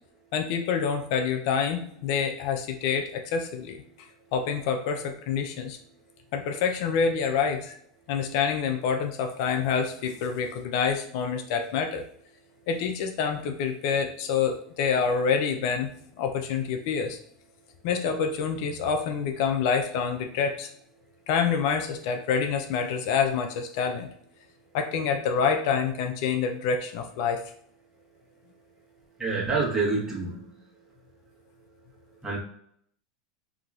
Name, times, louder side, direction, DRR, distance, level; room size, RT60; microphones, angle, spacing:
voice 1, 0.3-3.8 4.3-5.8 6.3-7.7 8.1-12.0 12.7-17.2 17.8-20.7 21.3-24.1 24.7-27.4, left 6 dB, 60° left, 5 dB, 0.5 m, -27 dB
voice 2, 29.2-30.4 32.2-32.4, right 3 dB, 20° right, -4 dB, 1.4 m, -27 dB
3.8 x 2.8 x 2.5 m, 0.67 s
hypercardioid pair, 105°, 3 cm